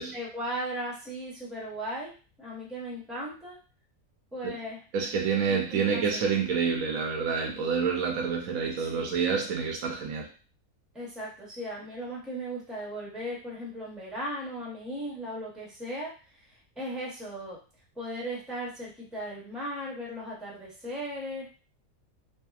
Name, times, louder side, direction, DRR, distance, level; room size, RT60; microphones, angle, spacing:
voice 1, 0.0-3.6 4.3-4.8 5.5-6.2 8.8-9.2 10.9-17.6 18.0-21.5, equal, ahead, 0.7 m, -37 dB
voice 2, 4.9-10.3, right 6 dB, 75° right, 1.0 m, -28 dB
2.7 x 2.2 x 2.4 m
omnidirectional pair, 1.5 m